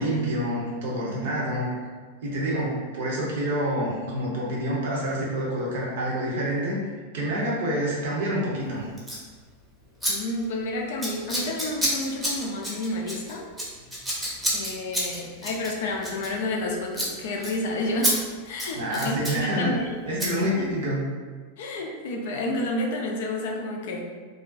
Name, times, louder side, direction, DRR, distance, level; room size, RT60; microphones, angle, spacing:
voice 1, 0.0-1.7 2.2-6.8 7.1-8.9 18.8-19.7 20.1-21.0, equal, 55° right, -4 dB, 0.6 m, -27 dB
Scissors, 9.0-9.2 10.0-10.1 10.4-10.6 11.0-16.7 16.9-17.1 17.4-17.5 18.0-18.1 18.5-19.4 20.2-20.3, equal, 5° right, 0.7 m, -29 dB
voice 2, 10.1-13.5 14.5-18.2 18.4-19.9 21.6-24.0, left 1 dB, 55° left, 0 dB, 0.3 m, -30 dB
2.4 x 2.1 x 2.4 m, 1.5 s
figure-of-eight pair, 90°, 0 cm